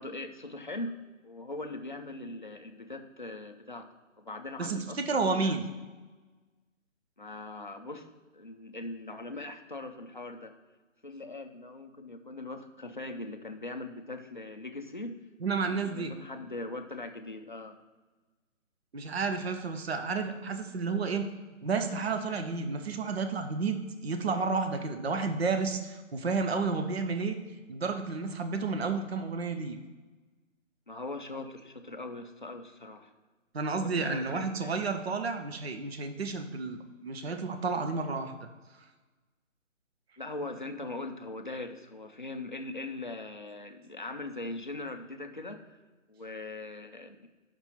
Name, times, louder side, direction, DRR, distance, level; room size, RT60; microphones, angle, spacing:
voice 1, 0.0-3.9 4.2-5.6 7.2-8.1 8.3-10.5 11.0-15.2 15.6-17.8 30.9-33.1 33.8-34.8 40.2-45.8 46.1-47.3, left 2 dB, 40° left, 5 dB, 0.4 m, -41 dB
voice 2, 4.6-5.7 15.4-16.1 18.9-21.3 21.6-27.4 27.7-29.8 33.5-38.3, right 4 dB, 55° right, 7 dB, 0.6 m, -31 dB
6.9 x 6.0 x 4.3 m, 1.3 s
hypercardioid pair, 175°, 39 cm